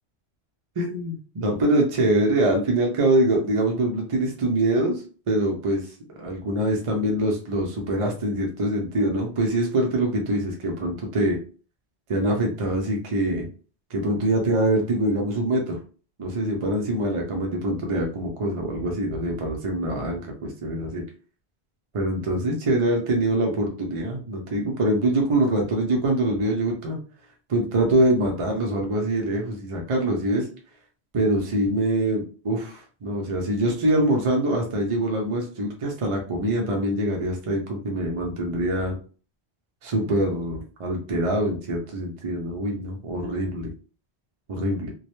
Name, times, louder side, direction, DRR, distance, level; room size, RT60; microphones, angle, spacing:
voice 1, 0.8-5.8 6.2-11.4 12.1-13.5 13.9-15.8 16.2-21.0 21.9-27.0 27.5-30.5 31.1-38.9 39.8-43.7 44.5-44.9, right 1 dB, 50° right, 0 dB, 0.4 m, -24 dB
2.2 x 2.0 x 2.9 m, 0.38 s
omnidirectional pair, 1.1 m